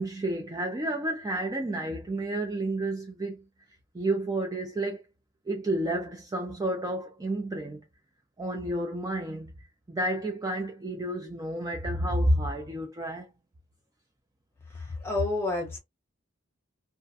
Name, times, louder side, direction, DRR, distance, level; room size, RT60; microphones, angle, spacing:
voice 1, 0.0-3.4 3.9-5.0 5.5-7.8 8.4-9.5 9.9-13.3, right 1 dB, 20° right, 0.4 m, -30 dB
voice 2, 14.7-15.8, left 2 dB, 15° left, 0.9 m, -29 dB
2.4 x 2.1 x 2.6 m
head